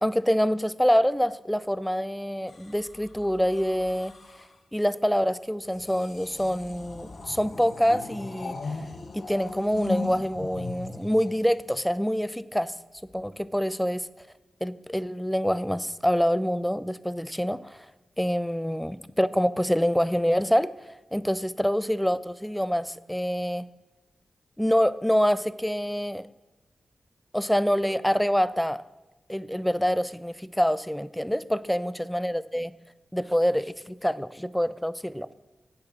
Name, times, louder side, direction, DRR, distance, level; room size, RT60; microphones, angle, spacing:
voice 1, 0.0-4.1 4.7-8.6 9.1-12.7 13.1-14.1 14.6-17.9 18.2-20.7 21.1-23.7 24.6-26.2 27.3-28.8 29.3-32.7 33.1-35.3, equal, 5° left, 17 dB, 0.5 m, -26 dB
sound 1, 2.5-4.6 5.7-12.1 13.0-13.3, left 3 dB, 70° left, 1.0 m, -38 dB
8.1 x 6.8 x 5.8 m, 1.2 s
cardioid pair, 45°, 0 cm